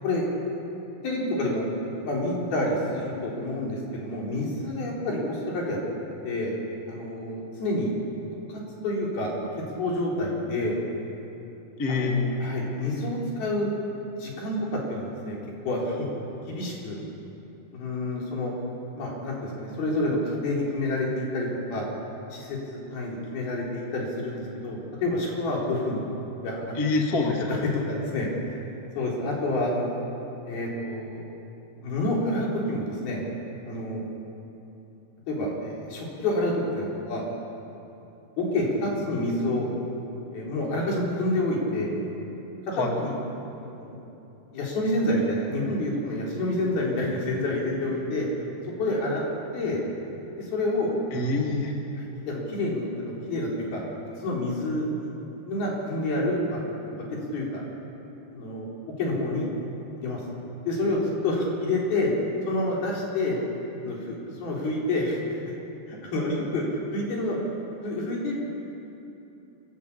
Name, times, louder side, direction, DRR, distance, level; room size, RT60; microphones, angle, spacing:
voice 1, 1.0-1.7 2.0-5.8 6.2-6.6 6.9-7.9 8.5-9.3 9.7-10.8 11.9-13.7 14.2-14.6 14.9-15.4 15.6-16.1 16.5-17.0 17.7-18.5 18.9-21.9 22.3-26.0 26.4-26.7 27.9-28.6 28.9-29.9 30.5-31.2 31.8-33.2 33.7-34.0 35.3-37.3 38.4-39.7 40.3-41.9 43.0-43.1 43.6-44.0 44.5-48.3 48.8-49.2 49.5-49.8 50.4-50.9 51.2-51.4 52.0-53.8 54.2-55.1 55.4-56.6 56.9-57.1 57.3-57.6 58.3-58.7 59.0-59.5 60.0-60.2 60.7-62.1 62.5-63.4 63.8-65.2 65.9-66.6 66.9-67.4 67.8-68.4, left 1 dB, 60° left, -3 dB, 5.9 m, -28 dB
voice 2, 11.8-12.2 26.7-27.6 42.8-43.0 51.1-51.7, left 3 dB, 35° left, 0 dB, 1.5 m, -25 dB
26.0 x 15.0 x 8.6 m, 2.9 s
omnidirectional pair, 5.0 m